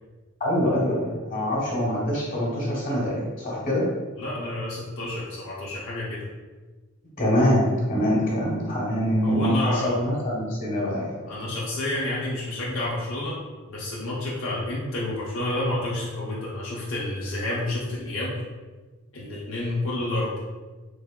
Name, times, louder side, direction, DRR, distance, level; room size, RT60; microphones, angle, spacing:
voice 1, 0.4-3.9 7.2-11.2, equal, 40° left, -5 dB, 1.2 m, -24 dB
voice 2, 4.2-6.2 9.2-10.0 11.3-13.4 13.7-18.4 19.1-20.3, left 1 dB, 75° left, -6 dB, 0.6 m, -29 dB
3.5 x 3.3 x 2.2 m, 1.3 s
head